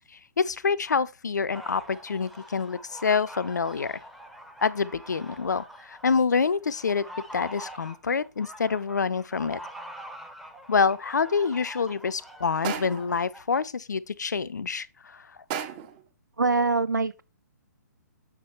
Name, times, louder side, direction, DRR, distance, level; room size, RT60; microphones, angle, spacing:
voice 1, 0.4-4.0 4.6-7.1 7.3-9.6 10.7-15.3, left 5 dB, 70° left, 0.5 m, -27 dB
sound 1, 1.5-13.6, equal, ahead, 0.8 m, -45 dB
sound 2, 12.6-13.2 15.5-16.0, right 8 dB, 30° right, 1.0 m, -33 dB
voice 2, 16.4-17.2, right 3 dB, 80° right, 0.4 m, -24 dB
7.2 x 5.9 x 3.3 m
figure-of-eight pair, 125°, 10 cm